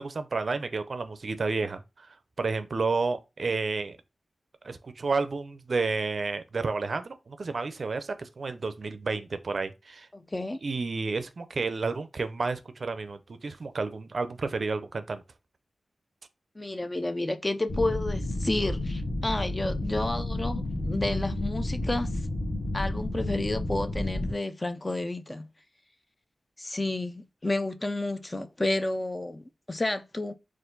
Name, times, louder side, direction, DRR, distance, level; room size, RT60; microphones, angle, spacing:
voice 1, 0.0-2.1 2.4-4.0 4.6-10.1 10.6-15.2, right 4 dB, 55° right, 0.5 m, -31 dB
voice 2, 10.1-10.6 16.6-22.1 22.7-25.5 26.6-30.3, left 2 dB, 20° left, 0.4 m, -31 dB
sound 1, 17.7-24.3, left 1 dB, 40° left, 1.4 m, -31 dB
4.3 x 2.5 x 3.8 m
wide cardioid pair, 115°, 0 cm